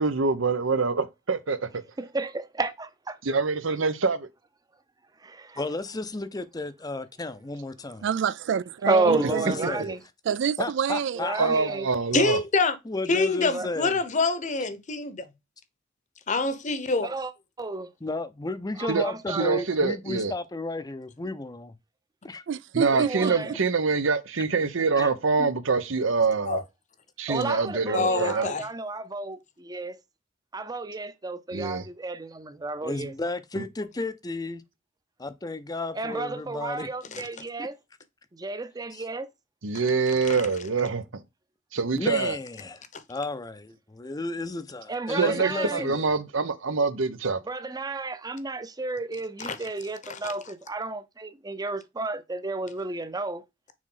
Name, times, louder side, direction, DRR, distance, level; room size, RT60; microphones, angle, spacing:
voice 1, 0.0-1.6 3.2-4.3 9.8-10.0 11.4-12.4 18.9-20.3 22.7-26.6 27.2-28.5 31.5-31.8 33.5-33.6 39.6-41.2 41.7-42.4 45.1-47.4, right 4 dB, 90° right, 0.9 m, -25 dB
voice 2, 2.0-3.2 5.2-5.6 8.9-10.0 11.1-11.9 13.5-13.7 17.0-17.3 17.6-17.9 18.8-19.6 22.9-23.6 27.3-30.0 30.5-33.1 35.9-37.7 38.3-39.3 44.9-45.9 47.5-53.4, right 3 dB, 20° right, 0.6 m, -31 dB
voice 3, 5.6-8.1 9.1-9.9 10.6-11.7 12.9-14.0 18.0-21.7 22.2-22.4 23.2-23.3 25.0-25.1 25.4-25.5 32.8-34.6 35.2-36.9 41.9-42.8 43.1-46.1, left 2 dB, 20° left, 0.6 m, -33 dB
voice 4, 8.0-9.7 10.3-11.2 22.5-23.5, right 7 dB, 65° right, 0.3 m, -27 dB
voice 5, 12.1-12.8 13.1-15.3 16.3-17.1 26.5-26.6 27.9-28.6 40.3-40.4 42.9-43.0 49.4-49.6 50.1-50.2, left 3 dB, 40° left, 0.9 m, -25 dB
6.3 x 4.3 x 3.8 m
head